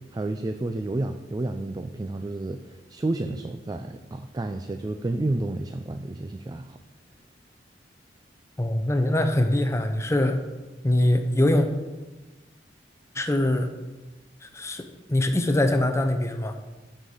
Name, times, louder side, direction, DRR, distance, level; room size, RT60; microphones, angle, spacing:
voice 1, 0.1-6.8, right 2 dB, 20° right, 7 dB, 0.3 m, -30 dB
voice 2, 8.6-10.4 10.8-11.7 13.1-13.7 14.4-16.5, left 1 dB, 15° left, 7 dB, 0.6 m, -23 dB
6.7 x 5.5 x 6.4 m, 1.2 s
head